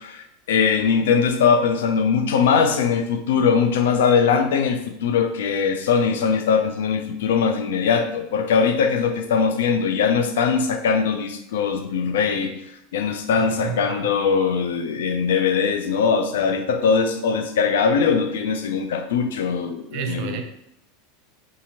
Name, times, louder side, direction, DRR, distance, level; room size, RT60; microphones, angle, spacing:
voice 1, 0.0-12.6 12.9-20.4, left 6 dB, 85° left, 7 dB, 0.3 m, -21 dB
voice 2, 13.4-14.1 19.9-20.4, right 7 dB, 60° right, 6 dB, 0.4 m, -30 dB
2.7 x 2.4 x 2.9 m, 0.79 s
supercardioid pair, 115°, 0 cm